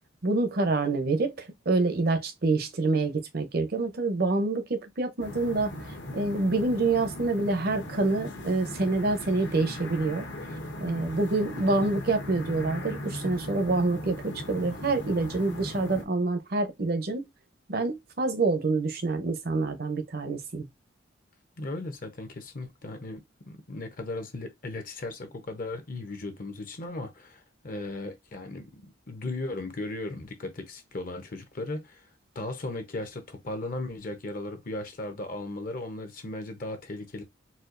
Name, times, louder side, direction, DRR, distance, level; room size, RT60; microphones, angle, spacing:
voice 1, 0.2-5.7 6.1-10.3 10.8-17.2 17.7-20.7, right 3 dB, 50° right, 0.7 m, -27 dB
sound 1, 5.2-16.0, left 1 dB, 65° left, 1.0 m, -38 dB
voice 2, 21.6-32.0 32.3-37.2, left 2 dB, 45° left, 0.7 m, -37 dB
4.2 x 2.4 x 2.5 m
head